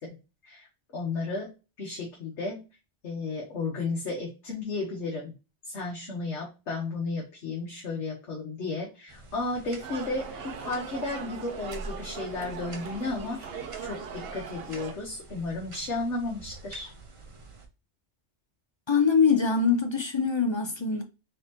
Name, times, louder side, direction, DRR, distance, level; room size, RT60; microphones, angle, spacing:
voice 1, 0.9-1.5 1.8-2.6 3.0-5.3 5.6-13.5 13.8-16.9, left 3 dB, 75° left, 1.5 m, -33 dB
sound 1, 9.1-17.7, right 2 dB, 30° right, 0.8 m, -46 dB
sound 2, 9.8-14.9, right 6 dB, 60° right, 0.9 m, -40 dB
voice 2, 18.9-21.0, left 5 dB, 40° left, 0.4 m, -23 dB
4.2 x 3.8 x 2.9 m
omnidirectional pair, 1.2 m